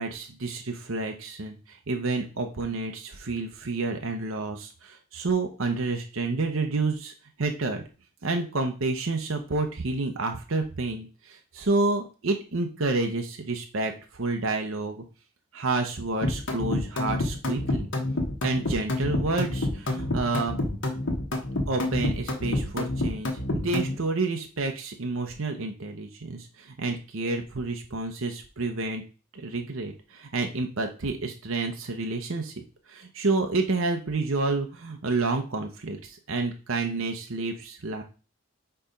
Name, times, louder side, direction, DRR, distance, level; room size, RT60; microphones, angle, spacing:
voice 1, 0.0-7.8 8.2-15.0 15.5-17.9 18.4-20.6 21.7-29.0 29.3-32.5 32.9-38.0, right 3 dB, 60° right, 4 dB, 0.8 m, -29 dB
sound 1, 16.2-24.0, left 1 dB, 55° left, 1.3 m, -28 dB
4.6 x 4.2 x 5.1 m, 0.34 s
head